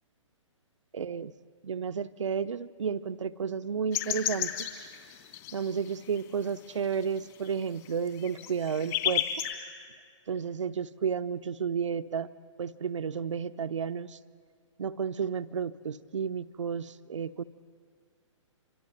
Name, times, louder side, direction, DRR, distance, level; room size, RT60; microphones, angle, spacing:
voice 1, 0.9-1.3 1.6-4.7 5.5-9.3 10.3-12.3 12.6-14.2 14.8-17.4, right 6 dB, 65° right, 13 dB, 0.8 m, -32 dB
sound 1, 3.9-6.2 6.6-9.5, left 11 dB, 30° left, 2.9 m, -32 dB
27.0 x 25.5 x 8.0 m, 2.1 s
figure-of-eight pair, 125°, 17 cm